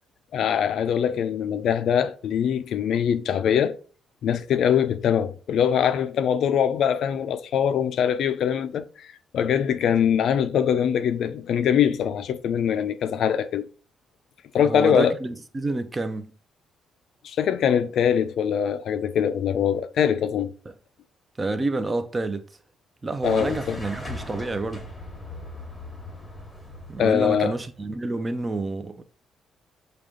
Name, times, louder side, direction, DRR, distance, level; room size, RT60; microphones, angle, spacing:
voice 1, 0.3-3.8 4.2-13.7 14.5-15.2 17.2-20.5 23.2-23.8 27.0-27.5, left 8 dB, 70° left, 0.3 m, -23 dB
voice 2, 14.6-16.3 21.4-22.4 23.0-24.8 26.9-29.0, right 2 dB, 25° right, 0.5 m, -28 dB
sound 1, 23.2-27.9, left 2 dB, 10° left, 1.2 m, -39 dB
4.9 x 2.3 x 3.6 m
cardioid pair, 90°, 0 cm